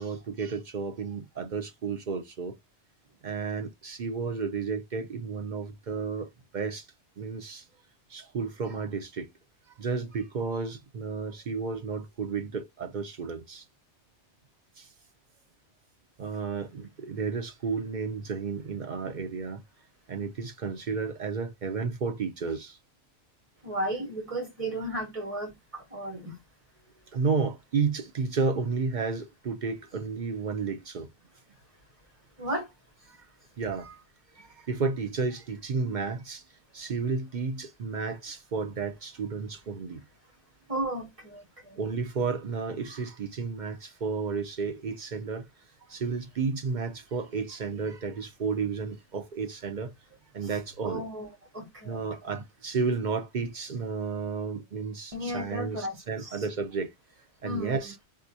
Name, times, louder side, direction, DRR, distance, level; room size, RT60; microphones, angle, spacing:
voice 1, 0.0-2.6 3.2-6.3 6.5-6.9 7.2-7.6 8.1-9.3 9.7-13.6 14.8-14.9 16.2-19.6 20.1-22.8 27.1-31.1 33.1-33.2 33.6-34.0 34.4-36.4 36.7-40.0 41.8-45.5 45.9-49.9 50.3-51.0 51.8-56.9 57.4-58.0, right 5 dB, 50° right, 0.6 m, -32 dB
voice 2, 23.6-26.4 32.4-32.7 40.7-41.8 50.8-51.3 51.5-52.0 55.1-56.0 57.4-57.7, right 1 dB, 30° right, 1.5 m, -34 dB
3.6 x 2.9 x 2.6 m
omnidirectional pair, 1.2 m